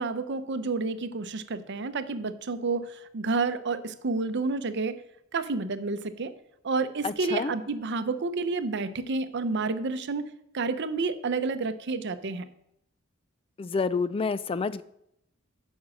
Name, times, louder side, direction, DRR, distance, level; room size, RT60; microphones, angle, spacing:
voice 1, 0.0-5.0 5.3-6.3 6.6-12.5, right 3 dB, 60° right, 11 dB, 0.7 m, -30 dB
voice 2, 7.0-7.5 13.6-14.8, left 4 dB, 25° left, 15 dB, 0.3 m, -28 dB
9.7 x 5.4 x 6.1 m, 0.77 s
head